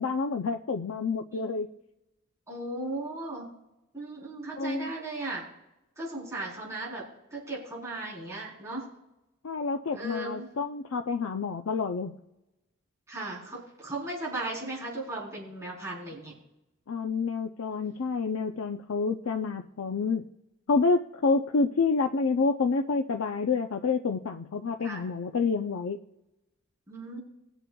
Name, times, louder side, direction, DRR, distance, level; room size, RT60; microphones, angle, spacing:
voice 1, 0.0-1.7 4.6-4.9 9.4-12.1 16.9-20.2 20.7-26.0, left 4 dB, 80° left, 5 dB, 0.5 m, -28 dB
voice 2, 2.5-3.5 3.9-5.4 6.0-7.0 7.3-8.8 9.9-10.5 13.1-16.3 24.8-25.0 26.9-27.2, right 2 dB, 15° right, -6 dB, 3.9 m, -36 dB
21.0 x 8.0 x 2.3 m, 0.94 s
head